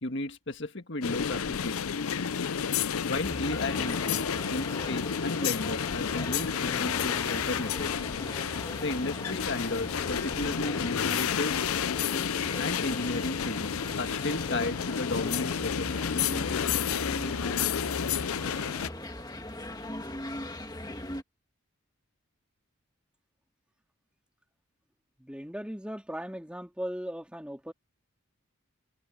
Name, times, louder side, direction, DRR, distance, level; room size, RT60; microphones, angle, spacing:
voice 1, 0.0-2.2 3.0-8.1 8.8-11.6 12.6-16.6, left 2 dB, 55° left, 1.7 m, -34 dB
sound 1, 1.0-18.9, left 7 dB, 80° left, 0.6 m, -31 dB
sound 2, 3.2-21.2, left 1 dB, 20° left, 1.9 m, -40 dB
voice 2, 25.2-27.7, equal, 5° right, 2.7 m, -38 dB
head